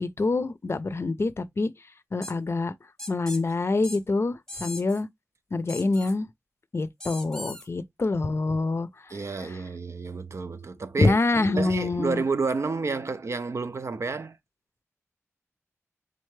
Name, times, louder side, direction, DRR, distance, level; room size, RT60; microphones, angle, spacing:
voice 1, 0.0-1.7 2.1-2.7 3.1-5.1 5.5-6.3 6.7-9.6 11.0-12.2, left 3 dB, 55° left, 0.5 m, -26 dB
sound 1, 2.2-2.3 3.0-3.4 3.8-4.0 4.5-5.0 5.7-6.1 7.0-7.7, left 1 dB, 10° left, 0.9 m, -39 dB
voice 2, 9.1-14.4, right 4 dB, 65° right, 0.4 m, -30 dB
3.8 x 3.3 x 3.2 m
wide cardioid pair, 75°, 5 cm